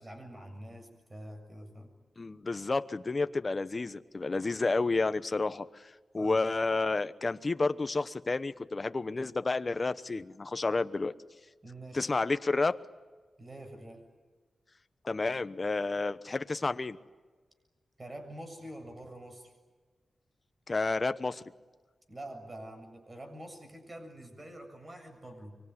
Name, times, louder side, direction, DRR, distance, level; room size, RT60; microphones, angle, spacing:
voice 1, 0.0-1.9 6.2-6.4 11.6-12.1 13.4-14.0 18.0-19.5 22.1-25.6, right 1 dB, 30° right, 5 dB, 7.2 m, -46 dB
voice 2, 2.2-11.1 11.9-12.8 15.0-17.0 20.7-21.4, left 3 dB, 35° left, 12 dB, 1.0 m, -30 dB
25.0 x 24.0 x 9.7 m, 1.4 s
wide cardioid pair, 95°, 0 cm